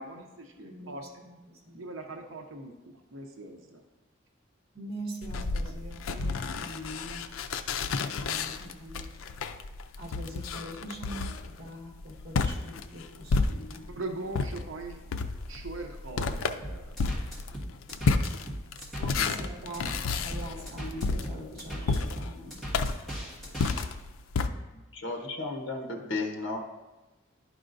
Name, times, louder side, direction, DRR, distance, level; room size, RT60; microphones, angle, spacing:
voice 1, 0.0-1.0 1.7-3.8 13.9-15.0 15.5-16.9, right 2 dB, 75° right, 3 dB, 0.7 m, -40 dB
voice 2, 0.6-1.9 4.7-7.3 7.8-9.5 10.0-14.0 19.0-22.6, right 1 dB, 50° right, -2 dB, 1.8 m, -43 dB
sound 1, 5.2-13.9 14.3-24.5, left 4 dB, 90° left, 0.4 m, -31 dB
sound 2, 16.6-23.8, equal, ahead, 1.6 m, -38 dB
voice 3, 24.9-26.6, left 3 dB, 60° left, 2 dB, 0.9 m, -33 dB
11.0 x 4.8 x 2.6 m, 1.1 s
head